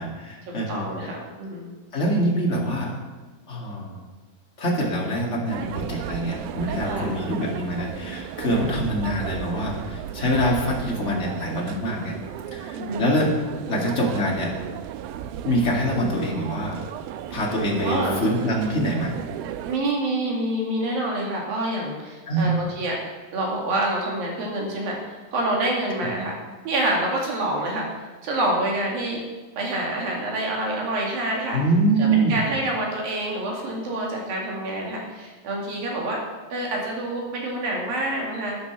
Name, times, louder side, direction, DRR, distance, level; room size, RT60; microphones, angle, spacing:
voice 1, 0.0-1.1 1.9-2.9 3.5-4.0 4.6-12.2 12.5-13.4 13.7-14.5 15.4-16.8 17.3-19.1 22.3-22.5 31.5-32.4, right 1 dB, 30° left, -2 dB, 1.5 m, -24 dB
voice 2, 0.7-1.7 6.8-7.1 8.4-8.8 12.7-13.0 15.9-16.1 17.8-18.2 19.7-23.0 23.3-26.4 26.6-27.9 28.2-29.2 29.6-31.6 32.0-36.2 36.5-38.6, right 1 dB, 65° right, -1 dB, 4.0 m, -27 dB
sound 1, 5.5-19.8, right 10 dB, 80° right, 2.3 m, -35 dB
13.0 x 9.9 x 5.9 m, 1.2 s
omnidirectional pair, 4.7 m